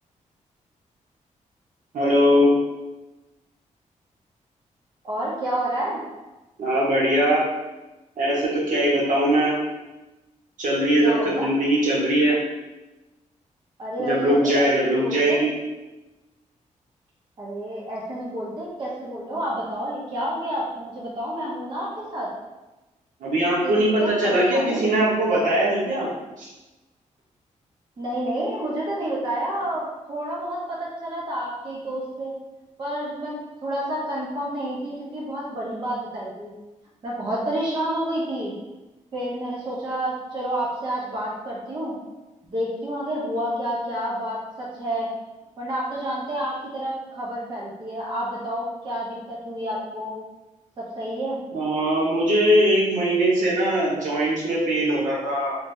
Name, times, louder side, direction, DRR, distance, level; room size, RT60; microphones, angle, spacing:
voice 1, 1.9-2.5 6.6-7.4 8.2-9.5 10.6-12.3 14.0-15.5 23.2-26.1 26.4-26.5 51.5-55.5, right 1 dB, 75° right, -5 dB, 1.1 m, -21 dB
voice 2, 5.0-6.0 11.0-11.5 13.8-15.5 17.4-22.3 23.6-24.9 28.0-32.3 32.8-33.3 33.6-36.5 37.0-38.6 39.1-42.0 42.5-45.1 45.6-50.2 50.8-51.4, right 1 dB, 35° right, -6 dB, 0.7 m, -29 dB
3.2 x 2.6 x 3.2 m, 1.1 s
wide cardioid pair, 165°, 13 cm